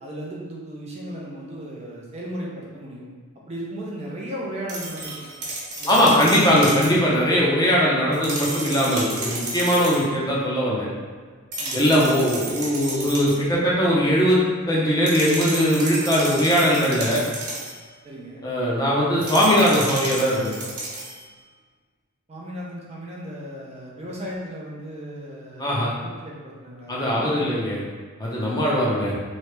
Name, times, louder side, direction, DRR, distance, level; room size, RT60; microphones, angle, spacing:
voice 1, 0.0-3.1 3.5-5.2 5.8-6.2 11.6-11.8 18.0-18.4 22.3-25.7 26.0-27.5, equal, 30° right, -4 dB, 0.5 m, -35 dB
sound 1, 4.7-7.0 8.1-10.1 11.5-13.5 15.1-17.8 19.2-21.2, right 2 dB, 85° right, 1.0 m, -32 dB
voice 2, 5.9-10.9 11.7-14.4 14.7-17.2 18.4-20.5 25.6-25.9 26.9-27.8 28.2-29.1, equal, 15° left, -5 dB, 0.6 m, -20 dB
3.1 x 2.7 x 3.2 m, 1.5 s
head